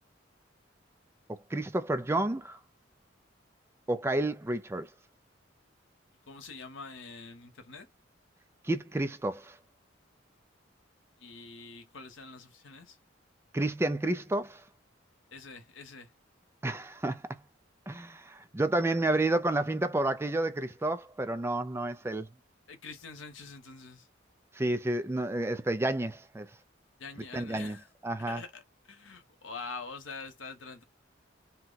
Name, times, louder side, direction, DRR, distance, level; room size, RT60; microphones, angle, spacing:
voice 1, 1.3-2.6 3.9-4.9 8.6-9.6 13.5-14.6 16.6-17.2 17.9-22.3 24.5-26.5 27.3-27.8 28.0-28.4, right 2 dB, 15° right, 0.4 m, -30 dB
voice 2, 6.3-7.9 11.2-13.0 15.3-16.1 22.7-24.1 27.0-27.9 28.3-30.8, left 4 dB, 80° left, 1.0 m, -45 dB
2.8 x 2.1 x 3.8 m
head